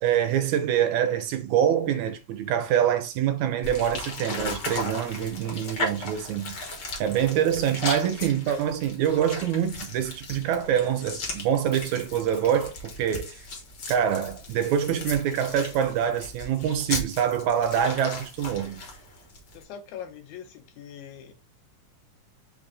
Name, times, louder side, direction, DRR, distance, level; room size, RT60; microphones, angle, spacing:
voice 1, 0.0-6.6 7.0-12.7 13.0-13.3 13.9-18.8, right 9 dB, 80° right, 1.9 m, -25 dB
sound 1, 3.6-19.6, left 2 dB, 60° left, 1.2 m, -36 dB
voice 2, 19.5-21.3, left 8 dB, 80° left, 2.1 m, -42 dB
5.0 x 2.5 x 3.7 m
omnidirectional pair, 3.5 m